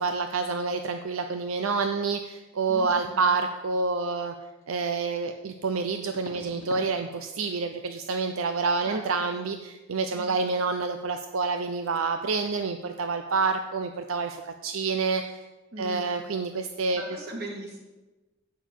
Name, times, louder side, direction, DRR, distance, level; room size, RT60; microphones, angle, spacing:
voice 1, 0.0-4.3 4.7-15.2 15.8-17.0, right 4 dB, 85° right, 7 dB, 0.6 m, -28 dB
voice 2, 2.7-3.2 8.9-9.3 10.1-10.6 15.7-16.2 16.9-17.8, right 1 dB, 50° right, -1 dB, 2.5 m, -39 dB
sound 1, 4.6-4.7 6.1-6.9 7.2-7.6 7.9-8.1 11.0-11.1 11.4-11.6 11.9-12.0, left 2 dB, 75° left, 1.3 m, -45 dB
8.2 x 6.3 x 8.0 m, 1.1 s
head